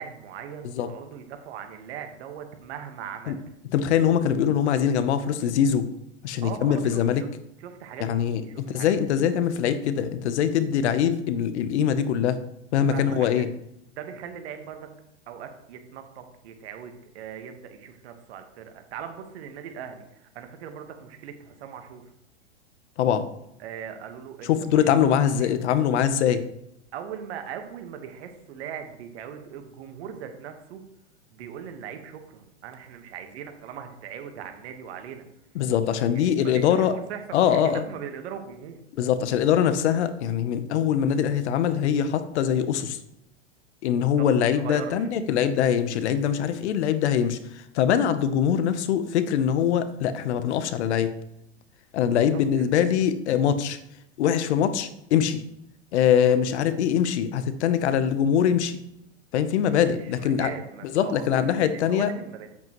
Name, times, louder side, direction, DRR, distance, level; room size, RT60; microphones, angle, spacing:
voice 1, 0.0-3.4 6.4-7.3 7.6-8.9 12.9-13.4 14.0-14.9 15.3-22.0 23.6-24.8 25.4-25.5 26.9-30.8 31.3-35.2 36.1-37.2 37.5-38.8 44.0-45.1 52.0-52.7 59.7-62.5, right 8 dB, 65° right, 6 dB, 1.5 m, -40 dB
voice 2, 3.7-5.9 6.2-7.2 8.0-8.4 8.7-12.4 12.7-13.5 23.0-23.2 24.5-26.4 35.5-36.9 37.3-37.8 39.0-43.0 43.8-47.4 47.7-51.1 51.9-53.8 54.2-55.4 55.9-58.8 59.3-60.5 60.9-62.1, left 9 dB, 70° left, 11 dB, 1.0 m, -23 dB
8.7 x 8.0 x 3.1 m, 0.80 s
hypercardioid pair, 120°, 35 cm